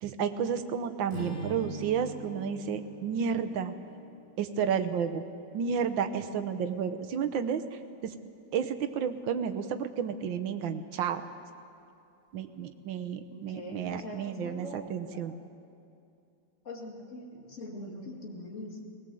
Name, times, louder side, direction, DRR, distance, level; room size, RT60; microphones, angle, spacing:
voice 1, 0.0-3.7 4.4-5.2 5.5-7.6 8.0-8.1 8.5-11.2 12.3-15.3, right 7 dB, 80° right, 8 dB, 1.7 m, -31 dB
Strum, 1.1-5.5, right 2 dB, 25° right, 2.9 m, -44 dB
voice 2, 13.3-14.8 15.1-15.3 16.6-18.8, left 1 dB, 40° left, -1 dB, 2.8 m, -42 dB
20.0 x 19.0 x 7.7 m, 2.6 s
omnidirectional pair, 2.1 m